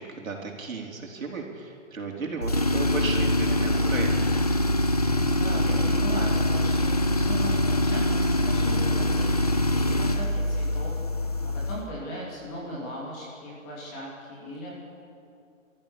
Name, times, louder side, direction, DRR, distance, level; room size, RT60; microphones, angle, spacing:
voice 1, 0.0-4.3, right 4 dB, 85° right, 0 dB, 4.5 m, -34 dB
Tools, 2.4-11.9, left 1 dB, 30° left, 0.6 m, -24 dB
voice 2, 5.4-14.7, equal, 10° left, -4 dB, 2.8 m, -38 dB
28.0 x 14.0 x 7.1 m, 2.5 s
hypercardioid pair, 175°, 40 cm